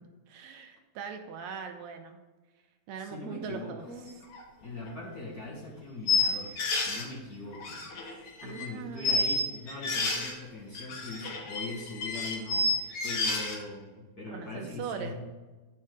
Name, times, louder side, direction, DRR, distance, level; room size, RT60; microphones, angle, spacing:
voice 1, 0.3-2.2 2.9-3.8 8.4-9.3 14.3-15.1, right 6 dB, 75° right, 5 dB, 1.9 m, -40 dB
voice 2, 3.0-4.1 4.6-12.7 13.0-15.1, left 2 dB, 40° left, -5 dB, 1.7 m, -41 dB
sound 1, 4.3-4.4 4.9-5.0 6.1-7.1 7.5-8.7 9.0-10.3 10.8-13.6, left 3 dB, 80° left, 2.7 m, -30 dB
9.7 x 5.5 x 3.7 m, 1.2 s
omnidirectional pair, 3.3 m